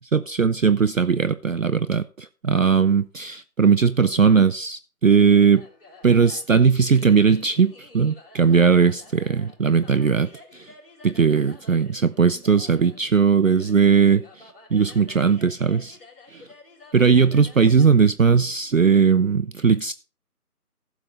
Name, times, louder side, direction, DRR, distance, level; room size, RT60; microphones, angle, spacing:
voice 1, 0.1-5.6 6.0-10.7 11.0-14.2 14.7-16.0 16.3-16.4 16.9-19.9, right 6 dB, 60° right, 0.6 m, -19 dB
Carnatic varnam by Ramakrishnamurthy in Mohanam raaga, 5.5-17.9, left 3 dB, 35° left, 3.6 m, -50 dB
15.0 x 7.2 x 4.2 m
figure-of-eight pair, 180°, 46 cm